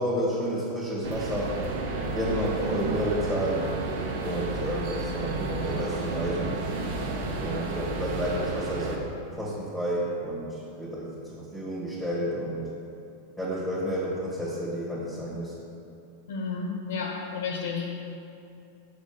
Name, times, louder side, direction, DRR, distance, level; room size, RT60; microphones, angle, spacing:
voice 1, 0.0-1.6 2.1-3.7 4.2-6.6 7.4-9.0 9.3-12.7 13.4-15.5, equal, 5° right, -7 dB, 1.7 m, -31 dB
sound 1, 1.0-9.0, right 3 dB, 50° right, 1.1 m, -31 dB
voice 2, 16.3-17.9, left 5 dB, 60° left, 1 dB, 1.0 m, -31 dB
7.1 x 4.9 x 6.8 m, 2.7 s
figure-of-eight pair, 90°, 0 cm